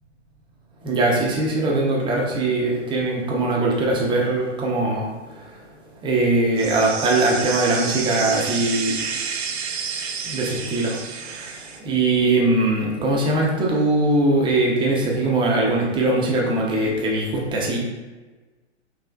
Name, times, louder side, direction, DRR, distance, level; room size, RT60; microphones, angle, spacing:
voice 1, 0.8-5.1 6.0-8.9 10.3-11.0 11.8-17.8, right 2 dB, 15° right, -2 dB, 0.6 m, -21 dB
sound 1, 6.6-11.8, right 6 dB, 60° right, 0.6 m, -30 dB
5.0 x 3.2 x 2.3 m, 1.3 s
hypercardioid pair, 115°, 36 cm